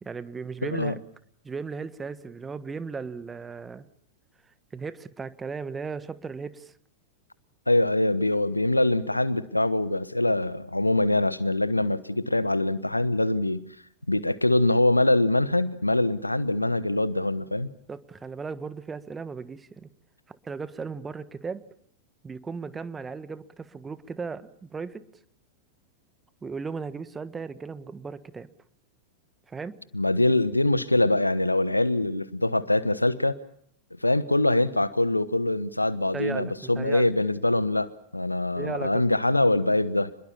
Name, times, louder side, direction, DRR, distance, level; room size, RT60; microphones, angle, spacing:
voice 1, 0.0-1.0 1.4-3.8 4.7-6.7 17.9-19.9 20.3-21.6 22.2-25.0 26.4-28.5 29.5-29.8 36.1-37.1 38.5-39.0, right 5 dB, 15° right, 14 dB, 1.4 m, -36 dB
voice 2, 7.7-13.7 14.1-17.7 29.9-33.4 34.0-40.1, left 2 dB, 85° left, 17 dB, 1.1 m, -24 dB
28.5 x 22.0 x 7.3 m, 0.65 s
figure-of-eight pair, 90°, 0 cm